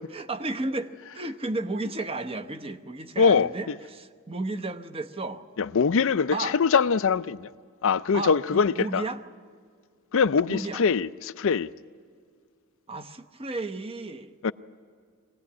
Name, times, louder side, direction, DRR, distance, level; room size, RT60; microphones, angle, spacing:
voice 1, 0.1-5.4 6.3-6.6 8.1-9.2 10.5-10.8 12.9-14.3, right 2 dB, 25° right, 0.9 m, -33 dB
voice 2, 3.2-3.7 5.6-7.5 7.8-9.0 10.1-11.7 14.4-14.5, left 5 dB, 65° left, 0.5 m, -23 dB
24.0 x 18.0 x 9.6 m
head